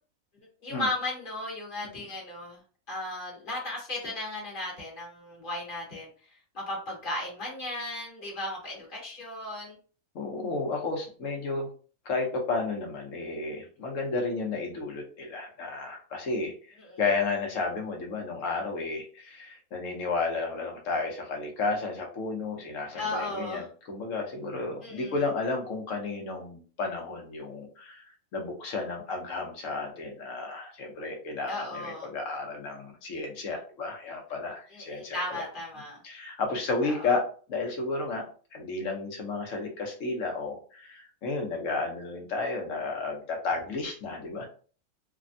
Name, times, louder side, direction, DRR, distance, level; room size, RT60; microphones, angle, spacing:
voice 1, 0.6-2.6 2.9-6.1 6.5-9.7 16.8-17.0 23.0-23.7 24.8-25.2 31.5-32.1 34.7-36.0 36.8-37.1, left 2 dB, 40° left, -3 dB, 1.3 m, -35 dB
voice 2, 10.1-11.7 12.0-28.0 28.3-35.4 36.0-37.2 37.5-38.2 38.5-44.5, left 3 dB, 65° left, 2 dB, 1.1 m, -32 dB
3.3 x 2.1 x 2.5 m, 0.40 s
omnidirectional pair, 1.5 m